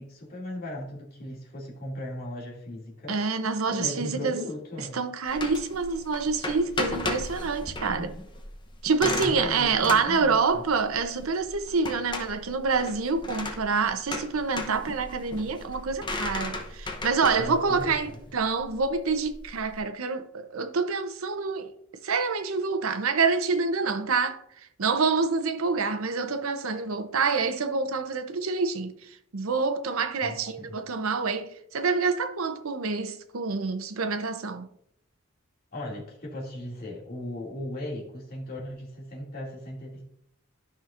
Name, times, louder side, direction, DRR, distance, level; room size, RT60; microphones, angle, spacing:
voice 1, 0.0-3.2 3.7-5.0 7.9-8.3 9.0-10.6 17.4-18.2 30.2-30.7 35.7-40.0, left 1 dB, 45° left, 2.5 m, -37 dB
voice 2, 3.1-4.4 4.8-8.1 8.8-21.7 22.0-24.4 24.8-34.7, right 4 dB, 75° right, 0.7 m, -27 dB
sound 1, 5.3-19.8, left 2 dB, 20° left, 0.8 m, -36 dB
12.5 x 5.7 x 2.5 m
head